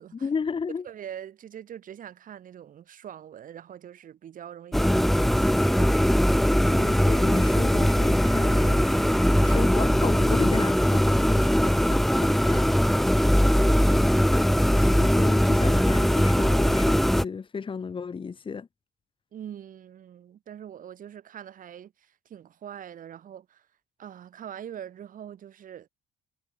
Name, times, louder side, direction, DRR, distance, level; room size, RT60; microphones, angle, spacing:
voice 1, 0.1-0.9 6.4-12.6 14.7-18.7, left 5 dB, 30° left, 3.2 m, -34 dB
voice 2, 0.8-6.4 9.3-9.6 12.3-12.6 13.5-14.2 19.3-23.7 24.0-25.9, right 9 dB, 55° right, 5.8 m, -43 dB
sound 1, 4.7-17.2, equal, ahead, 0.5 m, -21 dB
cardioid pair, 110°, 17 cm